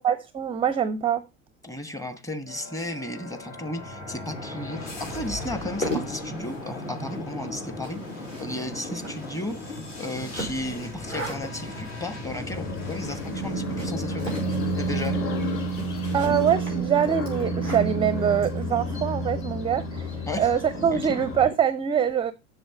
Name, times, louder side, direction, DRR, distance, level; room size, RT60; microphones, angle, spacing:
voice 1, 0.0-1.2 16.1-20.1 20.4-22.3, right 8 dB, 15° right, 0.6 m, -24 dB
voice 2, 1.6-14.4 14.8-15.2 20.3-20.5 20.9-21.2, left 1 dB, 10° left, 1.2 m, -34 dB
sound 1, 2.5-16.3, left 1 dB, 65° left, 4.9 m, -38 dB
sound 2, 5.5-19.0, right 1 dB, 90° left, 4.9 m, -39 dB
sound 3, 12.2-21.5, right 1 dB, 35° left, 2.8 m, -30 dB
7.9 x 6.6 x 5.2 m
figure-of-eight pair, 80°, 38 cm